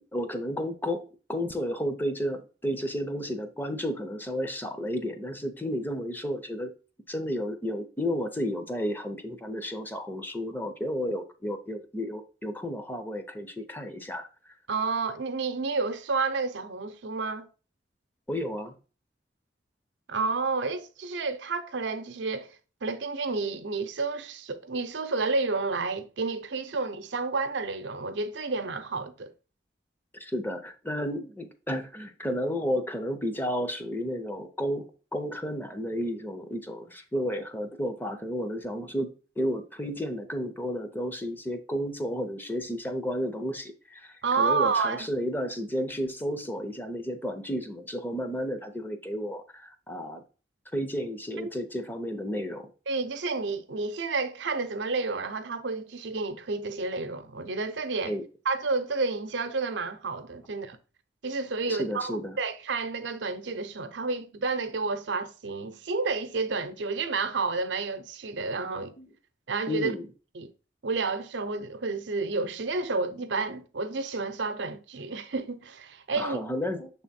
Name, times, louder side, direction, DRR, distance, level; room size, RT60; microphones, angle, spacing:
voice 1, 0.1-6.7 7.1-14.5 18.3-18.8 30.2-39.1 39.4-50.2 50.7-52.7 58.1-58.2 61.7-62.4 69.0-69.1 69.7-70.1 76.2-76.9, equal, 10° left, 0.6 m, -32 dB
voice 2, 14.7-17.5 20.1-22.5 22.8-29.3 44.2-45.1 52.9-58.1 58.5-60.8 61.2-68.9 69.5-69.9 70.4-70.5 70.8-76.4, right 4 dB, 85° right, 0.6 m, -30 dB
6.6 x 3.5 x 4.2 m
head